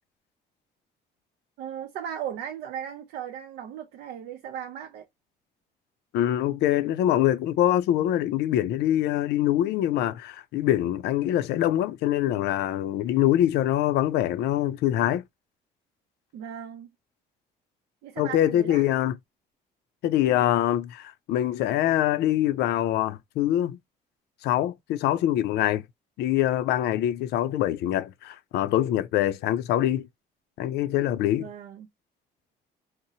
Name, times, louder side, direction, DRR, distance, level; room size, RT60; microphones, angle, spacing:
voice 1, 1.6-5.1 16.3-16.9 18.0-18.9 31.4-31.9, right 9 dB, 75° right, 0.5 m, -37 dB
voice 2, 6.1-15.2 18.2-19.2 20.0-23.8 24.4-25.8 26.2-30.1 30.6-31.5, left 12 dB, 75° left, 0.4 m, -24 dB
2.7 x 2.0 x 2.7 m
cardioid pair, 110°, 17 cm